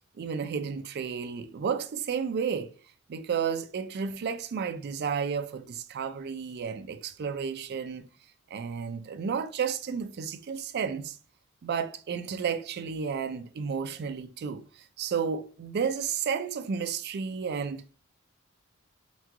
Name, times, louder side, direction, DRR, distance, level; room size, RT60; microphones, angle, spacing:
voice 1, 0.2-2.7 3.1-8.1 8.5-11.2 11.6-17.8, right 6 dB, 50° right, 0.3 m, -32 dB
3.0 x 2.2 x 3.5 m
head